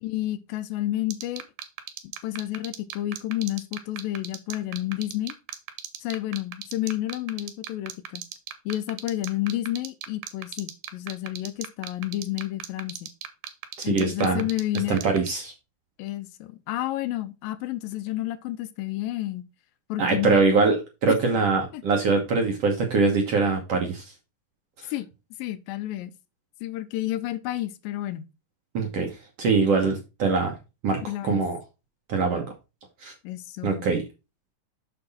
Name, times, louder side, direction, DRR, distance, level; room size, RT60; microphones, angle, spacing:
voice 1, 0.0-1.4 2.2-5.3 6.0-8.2 8.7-13.1 13.8-15.0 16.0-19.4 19.9-20.5 21.1-21.2 21.7-21.8 24.9-25.1 25.4-26.1 26.6-28.3 31.0-31.4 33.2-33.9, left 15 dB, 85° left, 2.4 m, -30 dB
sound 1, 1.1-15.3, right 11 dB, 80° right, 2.6 m, -36 dB
voice 2, 13.8-14.4 14.9-15.5 20.0-24.0 28.7-30.6 30.8-31.6 32.1-32.5 33.0-33.1 33.6-34.0, right 4 dB, 60° right, 1.7 m, -23 dB
6.8 x 6.2 x 4.2 m
omnidirectional pair, 4.0 m